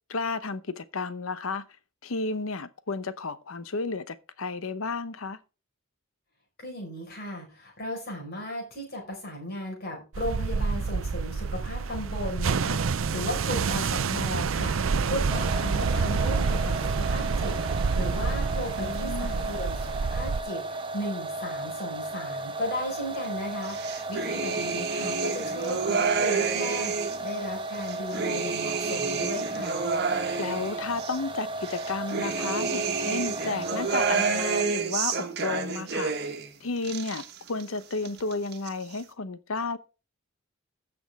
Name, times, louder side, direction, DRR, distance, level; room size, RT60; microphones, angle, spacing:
voice 1, 0.1-1.6 2.0-5.4 18.8-19.4 30.4-36.3 36.6-39.8, left 3 dB, 90° left, 0.8 m, -32 dB
voice 2, 6.6-29.8, left 1 dB, 50° left, 4.8 m, -36 dB
sound 1, 10.1-20.4, right 5 dB, 75° right, 0.5 m, -28 dB
sound 2, 15.3-34.6, right 2 dB, 25° right, 0.8 m, -35 dB
sound 3, 23.6-27.3 27.7-31.2 31.6-36.5 36.8-37.6 37.9-38.7, right 5 dB, 50° right, 1.4 m, -29 dB
16.0 x 6.2 x 3.5 m
head